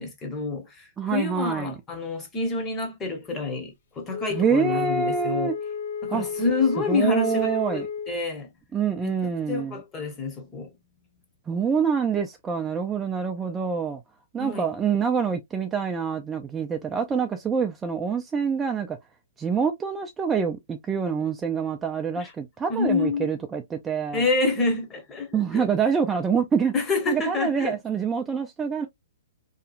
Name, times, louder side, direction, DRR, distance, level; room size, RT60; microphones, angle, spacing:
voice 1, 0.0-5.5 6.0-8.5 9.0-9.1 9.5-10.7 14.4-14.7 22.2-22.3 22.7-23.3 24.1-25.7 26.7-27.8, left 3 dB, 20° left, 0.9 m, -28 dB
voice 2, 1.0-1.8 4.3-5.6 6.1-6.3 6.9-7.9 8.7-9.8 11.5-14.0 14.3-19.0 19.4-24.2 25.3-26.7 27.1-28.9, right 6 dB, 15° right, 0.3 m, -26 dB
Wind instrument woodwind instrument, 4.1-8.2, left 6 dB, 70° left, 0.4 m, -33 dB
2.8 x 2.3 x 2.4 m
hypercardioid pair, 140°, 0 cm